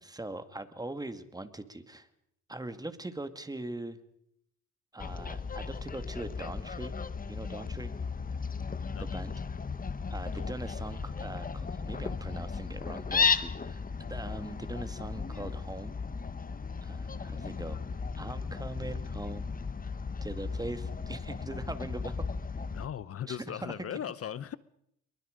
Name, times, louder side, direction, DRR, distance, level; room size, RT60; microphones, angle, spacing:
voice 1, 0.0-2.1 2.5-4.0 4.9-7.0 7.3-7.9 9.0-9.3 10.1-16.0 16.8-17.8 18.2-19.5 20.2-22.3 23.3-23.7, right 2 dB, 10° right, 10 dB, 2.2 m, -41 dB
Fowl, 5.0-22.9, left 5 dB, 30° left, 1.3 m, -35 dB
voice 2, 10.3-10.7 22.7-24.6, left 9 dB, 50° left, 17 dB, 0.8 m, -39 dB
27.0 x 22.5 x 5.2 m, 0.74 s
cardioid pair, 90°, 30 cm